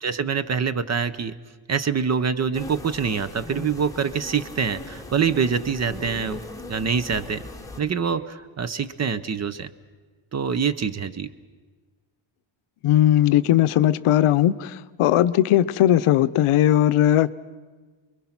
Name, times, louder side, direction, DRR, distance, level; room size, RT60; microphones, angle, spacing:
voice 1, 0.0-1.3 1.7-6.4 6.7-7.4 7.8-9.7 10.3-11.3, right 6 dB, 35° right, 14 dB, 0.6 m, -25 dB
sound 1, 2.5-7.8, left 2 dB, 5° left, 1.1 m, -39 dB
voice 2, 12.8-17.3, left 12 dB, 85° left, 15 dB, 0.8 m, -18 dB
28.5 x 22.0 x 5.9 m, 1.4 s
wide cardioid pair, 180°, 50 cm